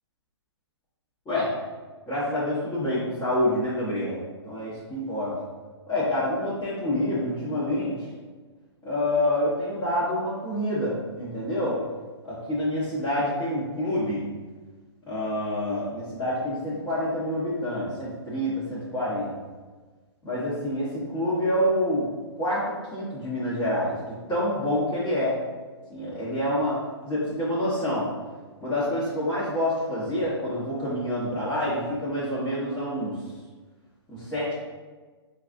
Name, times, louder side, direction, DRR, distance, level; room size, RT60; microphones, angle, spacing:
voice 1, 2.1-5.4 5.9-8.1 8.8-11.8 12.2-14.2 15.1-19.3 20.2-22.1 22.4-22.7 22.9-25.4 25.9-28.1 28.6-33.2 34.1-34.5, left 1 dB, 15° left, -11 dB, 1.1 m, -27 dB
5.9 x 2.4 x 2.5 m, 1.4 s
hypercardioid pair, 130°, 15 cm